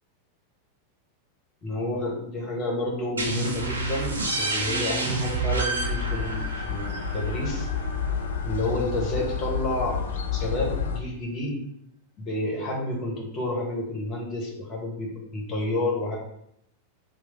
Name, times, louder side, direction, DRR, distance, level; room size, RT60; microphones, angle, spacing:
voice 1, 1.6-7.7 8.4-10.0 10.3-11.6 12.2-16.2, left 1 dB, 30° left, -2 dB, 1.1 m, -30 dB
sound 1, 3.2-8.6, right 3 dB, 75° right, 0.5 m, -29 dB
sound 2, 5.8-11.0, left 6 dB, 60° left, 0.3 m, -30 dB
3.1 x 2.1 x 3.2 m, 0.75 s
figure-of-eight pair, 90°, 0 cm